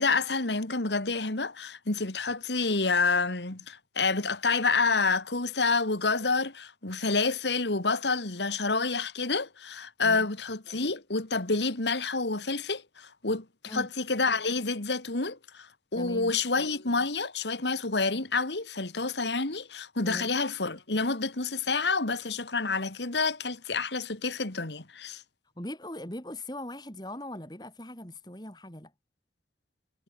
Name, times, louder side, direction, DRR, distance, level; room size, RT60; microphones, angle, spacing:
voice 1, 0.0-25.2, left 4 dB, 85° left, 2.5 m, -28 dB
voice 2, 15.9-16.3 20.0-20.3 25.6-28.9, left 1 dB, 25° left, 4.4 m, -40 dB
head